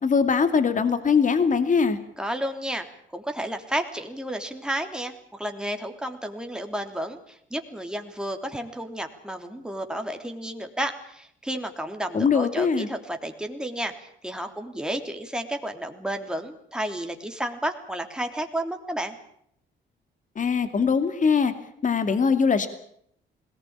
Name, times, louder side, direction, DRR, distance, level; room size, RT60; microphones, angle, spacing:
voice 1, 0.0-2.0 12.1-12.9 20.4-21.5 21.8-22.7, left 5 dB, 40° left, 9 dB, 2.5 m, -21 dB
voice 2, 2.2-2.9 3.1-19.2, right 1 dB, 5° right, 4 dB, 3.3 m, -32 dB
21.0 x 19.0 x 8.9 m, 0.71 s
cardioid pair, 90°, 20 cm